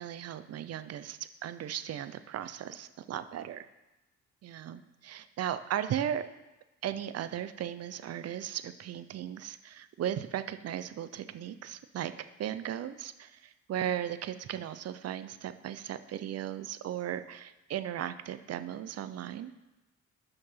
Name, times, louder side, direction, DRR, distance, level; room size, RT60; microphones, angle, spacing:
voice 1, 0.0-3.7 4.4-6.2 6.8-12.1 12.4-19.5, right 10 dB, 55° right, 12 dB, 0.6 m, -36 dB
6.7 x 5.8 x 5.6 m, 1.0 s
cardioid pair, 90°, 30 cm